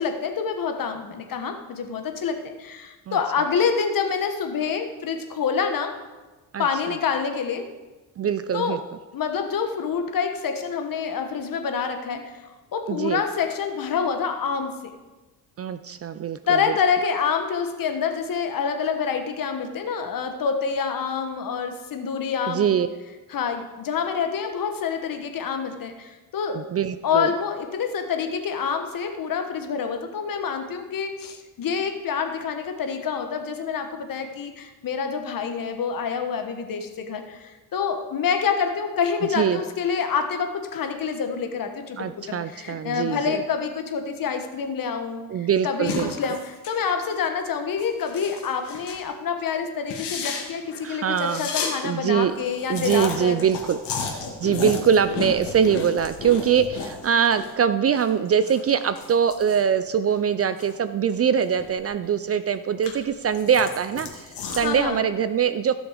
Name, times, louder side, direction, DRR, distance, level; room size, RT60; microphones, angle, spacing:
voice 1, 0.0-6.0 6.6-7.7 8.5-8.8 9.1-14.9 16.5-22.7 23.3-26.6 27.0-53.4 64.6-65.1, left 6 dB, 50° left, 6 dB, 1.5 m, -27 dB
voice 2, 8.2-8.8 12.9-13.2 15.6-16.7 22.5-22.9 26.5-27.3 39.3-39.6 42.0-43.4 45.3-46.1 50.8-51.5 51.8-52.4 52.7-53.8 54.1-65.7, right 8 dB, 35° right, 13 dB, 0.4 m, -23 dB
sound 1, 45.8-46.8 47.1-47.3 47.7-49.1 49.4-49.5 49.8-51.7 52.1-52.2 52.3-57.5 57.8-60.7 61.1-62.1 62.5-64.8, left 5 dB, 75° left, 2.2 m, -34 dB
15.5 x 6.3 x 5.1 m, 1.2 s
cardioid pair, 105°, 42 cm